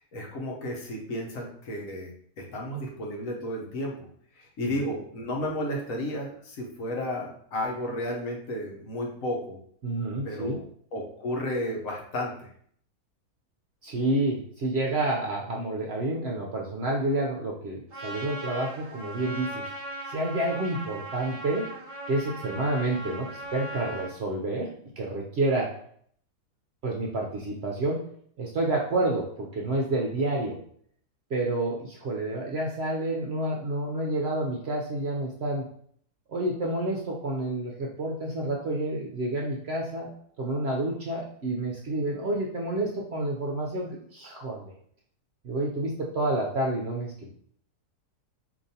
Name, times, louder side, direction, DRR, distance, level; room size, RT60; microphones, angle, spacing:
voice 1, 0.1-2.1 2.4-3.9 4.4-9.6 10.2-10.6 10.9-12.5, left 1 dB, 60° left, -1 dB, 1.2 m, -32 dB
voice 2, 9.8-10.6 13.8-19.6 20.1-21.7 22.1-24.7 25.0-25.7 26.8-28.0 28.4-30.6 31.3-35.7 36.3-40.1 40.4-44.7 45.4-47.3, right 2 dB, 60° right, -1 dB, 0.7 m, -29 dB
Trumpet, 17.9-24.1, right 1 dB, 40° right, 1.0 m, -38 dB
5.0 x 2.9 x 2.7 m, 0.62 s
omnidirectional pair, 1.6 m